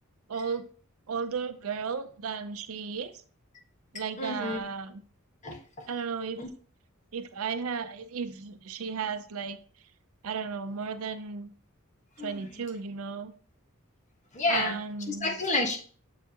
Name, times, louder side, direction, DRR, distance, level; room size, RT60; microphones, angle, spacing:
voice 1, 0.3-0.7 1.1-3.1 3.9-5.0 5.9-6.4 7.1-9.6 10.2-11.5 12.2-13.3 14.5-15.4, right 5 dB, 70° right, 11 dB, 0.5 m, -34 dB
voice 2, 4.2-4.6 5.4-5.9 6.4-6.5 12.2-12.5 14.3-14.8 15.1-15.8, left 2 dB, 35° left, 2 dB, 1.2 m, -30 dB
7.0 x 4.8 x 2.8 m, 0.43 s
head